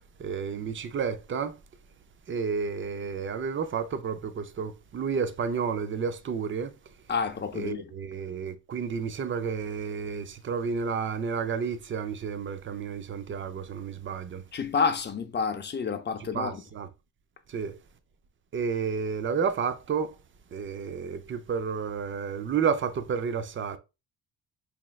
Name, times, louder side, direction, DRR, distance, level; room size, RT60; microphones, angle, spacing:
voice 1, 0.2-1.6 2.3-6.7 7.5-14.4 16.3-16.9 17.5-17.8 18.5-20.2 20.5-23.8, right 6 dB, 30° right, 0.4 m, -31 dB
voice 2, 7.1-7.8 14.5-16.5, left 5 dB, 25° left, 0.5 m, -29 dB
4.3 x 3.0 x 2.3 m
cardioid pair, 120°, 40 cm